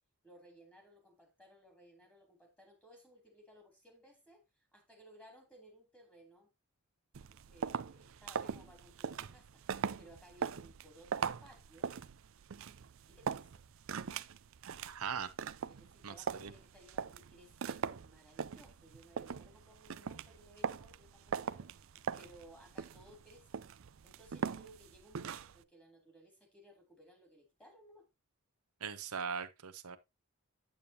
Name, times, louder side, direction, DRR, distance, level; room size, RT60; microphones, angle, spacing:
voice 1, 0.2-6.5 7.3-11.9 13.1-13.6 15.7-23.7 24.0-28.1, right 1 dB, 5° left, 3.1 m, -60 dB
sound 1, 7.1-25.6, right 6 dB, 60° right, 0.5 m, -41 dB
voice 2, 14.8-15.3 16.0-16.5 28.8-30.0, right 6 dB, 80° right, 0.9 m, -40 dB
8.8 x 8.7 x 2.7 m
head